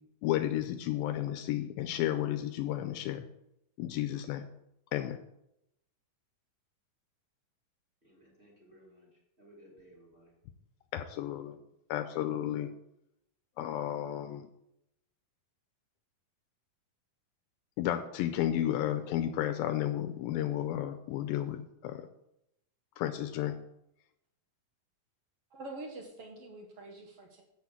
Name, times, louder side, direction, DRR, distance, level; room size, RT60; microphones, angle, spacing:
voice 1, 0.2-3.2 3.8-4.5 4.9-5.2 10.9-11.6 11.9-12.7 13.6-14.5 17.8-22.1 23.0-23.6, left 12 dB, 85° left, 7 dB, 2.4 m, -32 dB
voice 2, 8.0-10.3, equal, 20° right, -2 dB, 1.9 m, -59 dB
voice 3, 25.5-27.4, right 2 dB, 65° right, 2 dB, 1.5 m, -45 dB
7.6 x 6.2 x 7.1 m, 0.82 s
omnidirectional pair, 4.1 m